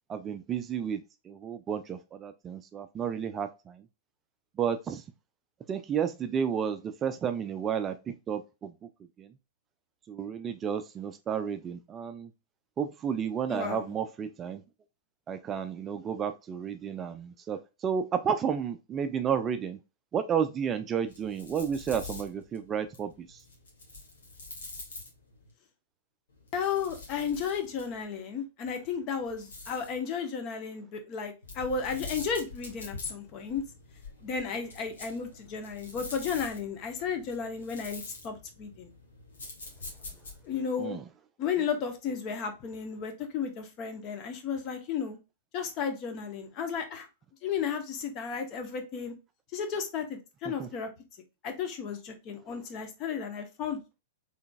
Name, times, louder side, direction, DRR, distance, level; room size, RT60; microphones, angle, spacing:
voice 1, 0.1-1.0 1.3-3.8 4.6-5.0 5.7-8.0 8.3-8.7 9.2-9.3 10.1-12.3 12.8-14.6 15.3-19.8 20.1-23.4 40.8-41.0 50.6-50.7, right 7 dB, 25° right, 0.3 m, -32 dB
voice 2, 13.5-13.9 26.5-33.6 34.2-38.9 40.4-41.0 41.4-45.2 45.5-47.1 47.4-49.1 49.5-50.9 51.4-53.8, left 6 dB, 35° left, 0.9 m, -33 dB
sound 1, 21.0-25.5 26.3-28.1 29.1-30.0 31.4-40.6, left 3 dB, 70° left, 1.5 m, -46 dB
3.7 x 3.4 x 2.3 m
figure-of-eight pair, 100°, 0 cm